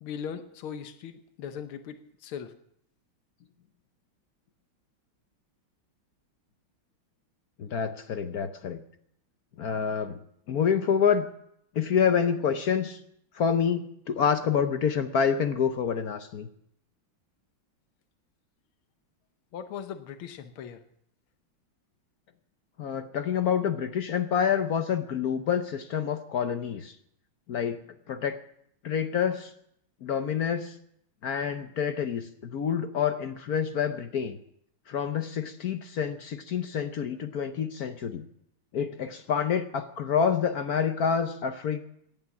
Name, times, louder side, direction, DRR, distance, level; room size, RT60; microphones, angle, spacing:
voice 1, 0.0-2.5 19.5-20.8, left 8 dB, 85° left, 9 dB, 1.9 m, -39 dB
voice 2, 7.6-8.8 9.6-10.2 10.5-11.3 11.7-13.0 13.3-16.5 22.8-26.9 27.5-27.8 28.1-28.4 28.8-29.5 30.0-30.7 31.2-34.4 34.9-38.3 38.7-41.8, left 7 dB, 60° left, 9 dB, 1.1 m, -27 dB
18.0 x 11.5 x 6.0 m, 0.70 s
omnidirectional pair, 2.3 m